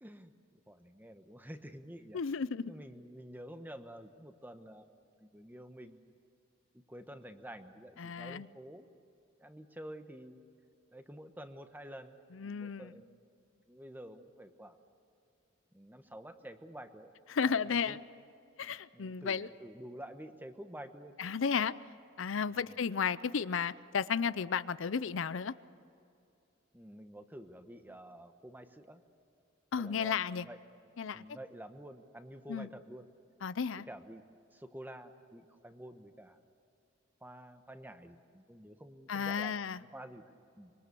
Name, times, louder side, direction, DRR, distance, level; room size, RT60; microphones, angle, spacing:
voice 1, 0.0-0.3 0.7-2.2 2.7-4.9 5.2-6.0 6.9-8.9 9.4-10.5 10.9-12.2 12.4-13.2 13.7-14.8 15.7-17.1 17.4-18.0 18.9-21.2 22.5-22.8 26.7-29.0 29.8-30.6 31.1-33.1 33.8-34.2 34.5-36.4 37.2-40.2 40.6-40.7, right 1 dB, 10° right, 8 dB, 1.1 m, -49 dB
voice 2, 2.1-2.6 8.0-8.5 12.3-12.9 17.3-18.0 18.6-19.5 21.2-21.7 22.2-25.5 29.7-30.5 31.0-31.2 32.5-32.7 33.4-33.9 39.1-39.8, left 6 dB, 70° left, 16 dB, 0.5 m, -33 dB
25.0 x 23.0 x 6.9 m, 2.6 s
head